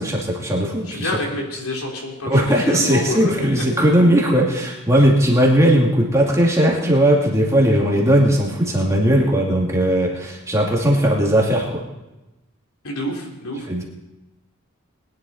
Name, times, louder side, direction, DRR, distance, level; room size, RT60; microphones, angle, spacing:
voice 1, 0.0-1.1 2.3-11.8 13.7-13.8, right 1 dB, 15° right, -2 dB, 2.4 m, -18 dB
voice 2, 0.8-3.7 4.9-5.0 12.8-13.9, left 1 dB, 85° left, 0 dB, 3.4 m, -28 dB
21.0 x 11.0 x 4.3 m, 1.0 s
head